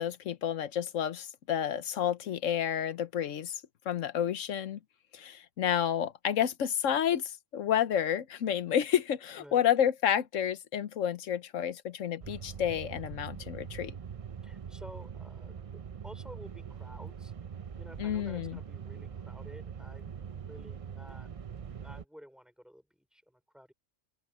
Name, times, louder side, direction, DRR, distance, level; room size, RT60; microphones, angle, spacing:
voice 1, 0.0-4.8 5.1-13.9 18.0-18.6, left 9 dB, 75° left, 1.2 m, -30 dB
sound 1, 12.2-22.0, right 7 dB, 50° right, 0.4 m, -43 dB
voice 2, 14.4-17.3 17.8-21.3 21.8-22.9 23.1-23.7, equal, ahead, 5.2 m, -52 dB
omnidirectional pair, 1.4 m